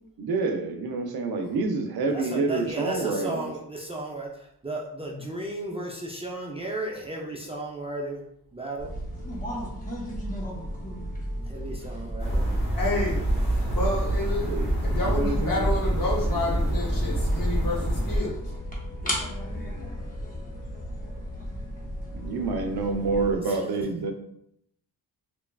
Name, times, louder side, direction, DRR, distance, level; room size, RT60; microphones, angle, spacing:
voice 1, 0.2-3.5 14.5-14.7 15.0-15.7 22.1-24.1, right 3 dB, 70° right, 5 dB, 0.5 m, -28 dB
voice 2, 2.1-4.3 4.6-8.2 8.5-8.9 11.4-12.5 23.0-23.6, right 2 dB, 15° right, -2 dB, 0.3 m, -34 dB
sound 1, 8.8-23.4, equal, 20° left, 0.7 m, -35 dB
sound 2, 12.2-18.2, right 1 dB, 80° left, 1.4 m, -26 dB
voice 3, 12.7-13.2 13.7-14.5 14.8-18.4, left 2 dB, 55° left, -2 dB, 0.9 m, -29 dB
2.9 x 2.3 x 2.2 m, 0.74 s
wide cardioid pair, 95°, 38 cm